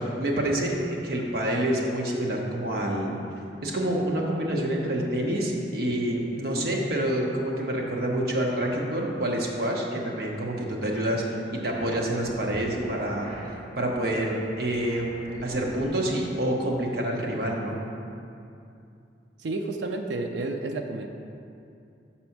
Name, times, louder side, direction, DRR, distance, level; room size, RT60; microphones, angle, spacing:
voice 1, 0.0-3.1 3.6-11.2 11.5-13.3 13.8-17.8, right 1 dB, 55° right, -1 dB, 1.0 m, -27 dB
sound 1, 12.1-13.6 14.5-16.3, equal, 35° right, 1.4 m, -41 dB
voice 2, 19.4-21.1, right 2 dB, 75° right, 4 dB, 0.4 m, -31 dB
6.1 x 4.3 x 5.8 m, 2.6 s
head